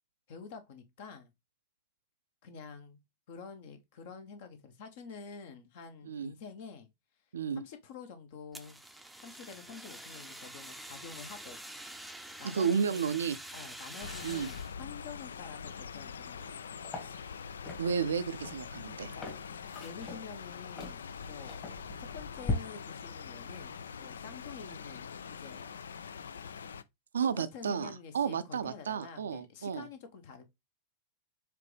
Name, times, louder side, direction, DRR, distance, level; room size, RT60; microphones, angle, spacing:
voice 1, 0.3-1.3 2.4-3.0 3.3-6.9 7.5-8.8 9.2-11.6 12.4-13.2 13.5-16.8 19.1-19.4 19.8-21.7 22.0-25.7 27.5-30.4, left 6 dB, 50° left, 1.0 m, -48 dB
Fire, 8.5-14.7, right 1 dB, 5° right, 0.6 m, -47 dB
voice 2, 12.5-13.4 14.2-14.5 17.8-19.2 27.1-29.9, right 7 dB, 65° right, 0.4 m, -32 dB
sound 1, 14.0-26.8, left 6 dB, 70° left, 0.3 m, -44 dB
sound 2, 16.8-22.5, left 2 dB, 30° left, 1.7 m, -40 dB
4.9 x 3.3 x 3.2 m
figure-of-eight pair, 90°, 0 cm